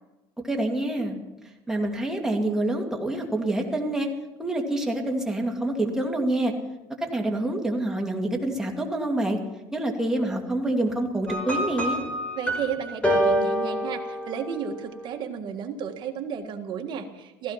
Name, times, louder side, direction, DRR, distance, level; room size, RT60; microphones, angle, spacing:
voice 1, 0.4-1.2 1.7-4.1 4.4-6.5 7.0-9.4 9.7-12.0, right 1 dB, 5° right, 1 dB, 2.4 m, -26 dB
sound 1, 11.3-14.7, equal, 10° left, 4.7 m, -26 dB
voice 2, 12.4-17.5, right 7 dB, 45° right, 4 dB, 1.7 m, -33 dB
15.5 x 15.5 x 5.8 m, 1.0 s
cardioid pair, 135°, 11 cm